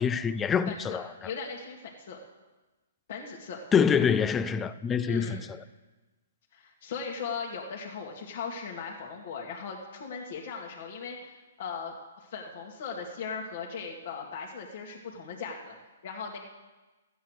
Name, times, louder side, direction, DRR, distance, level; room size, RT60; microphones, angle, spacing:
voice 1, 0.0-1.1 3.7-5.5, left 7 dB, 15° left, 0.5 m, -25 dB
voice 2, 0.7-2.2 3.1-3.7 5.0-5.5 6.5-15.8 16.0-16.4, left 5 dB, 55° left, 2.0 m, -38 dB
14.5 x 9.1 x 6.4 m
hypercardioid pair, 145°, 0 cm